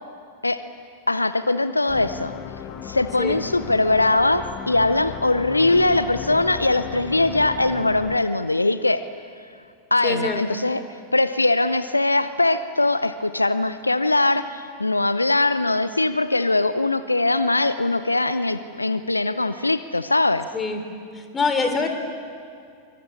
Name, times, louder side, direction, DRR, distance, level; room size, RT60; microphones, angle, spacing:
voice 1, 1.1-2.3 2.8-9.0 9.9-10.8 11.1-20.5, left 2 dB, 85° left, 13 dB, 0.7 m, -21 dB
sound 1, 1.9-8.2, left 9 dB, 40° left, 1.7 m, -36 dB
voice 2, 10.0-10.6 20.5-20.8 21.1-21.9, left 4 dB, 15° left, 7 dB, 3.4 m, -24 dB
24.5 x 24.0 x 8.6 m, 2.3 s
figure-of-eight pair, 90°, 0 cm